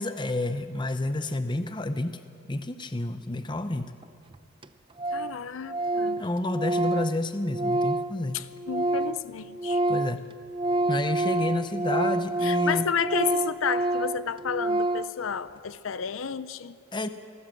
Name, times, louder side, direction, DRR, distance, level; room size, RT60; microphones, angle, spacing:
voice 1, 0.0-2.2 2.5-3.9 6.2-8.4 9.9-10.3 10.9-12.9 16.9-17.1, left 2 dB, 20° left, 10 dB, 0.7 m, -29 dB
Organ, 4.0-4.1 4.3-4.4 4.6-4.7 5.0-5.4 5.6-9.2 9.5-15.2, right 2 dB, 25° right, 0.5 m, -28 dB
voice 2, 5.1-6.2 8.3-9.8 12.4-16.8, left 6 dB, 75° left, 14 dB, 0.6 m, -31 dB
28.0 x 12.5 x 7.6 m, 2.4 s
head